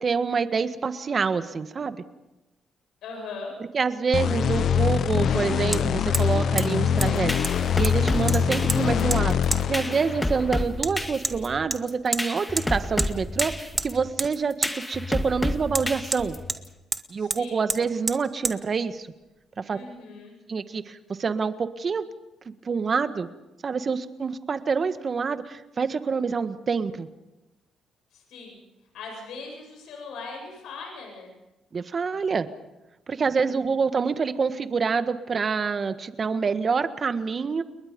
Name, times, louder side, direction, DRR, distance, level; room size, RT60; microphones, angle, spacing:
voice 1, 0.0-2.0 3.7-16.4 17.1-19.1 19.6-19.8 20.5-22.0 22.4-23.3 23.6-27.1 31.7-32.5 33.1-37.6, right 5 dB, 40° right, 11 dB, 1.6 m, -27 dB
voice 2, 3.0-3.5 17.2-17.6 19.6-20.4 28.1-28.6 28.9-31.3 33.1-33.7, left 4 dB, 80° left, 1 dB, 7.8 m, -40 dB
Hammer, 3.8-3.9 5.7-5.8 6.1-6.3 6.6-6.7 7.0-7.1 7.4-8.0 8.3-8.8 9.1-9.2 9.5-9.6 10.8-10.9 11.2-11.4 11.7-12.2 12.6-12.7 13.0-13.1 13.4-13.9 14.2-14.3 14.6-14.7 15.7-16.6 16.9-17.0 17.3-17.4 17.7-17.8 18.1-18.2 18.4-18.6, right 2 dB, 20° right, 1.6 m, -28 dB
sound 1, 4.1-10.6, left 8 dB, 65° left, 0.9 m, -24 dB
sound 2, 7.0-16.7, left 1 dB, 15° left, 2.2 m, -31 dB
29.5 x 21.5 x 5.4 m, 1.0 s
cardioid pair, 90°, 0 cm